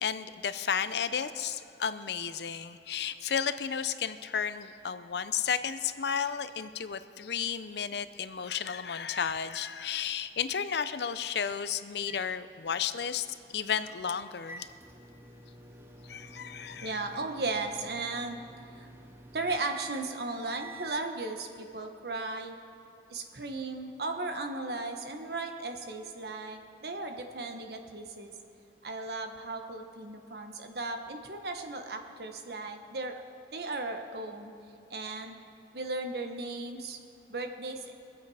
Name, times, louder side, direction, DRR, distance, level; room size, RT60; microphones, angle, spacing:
voice 1, 0.0-14.7 16.1-17.0, left 7 dB, 75° left, 12 dB, 0.6 m, -33 dB
sound 1, 12.0-21.1, right 2 dB, 15° right, 0.7 m, -51 dB
voice 2, 16.8-18.4 18.7-18.9 19.3-22.5 23.1-28.3 28.8-33.2 33.5-34.5 34.9-35.4 35.7-37.0 37.3-37.8, right 3 dB, 70° right, 5 dB, 1.2 m, -36 dB
23.0 x 8.2 x 4.9 m, 2.5 s
head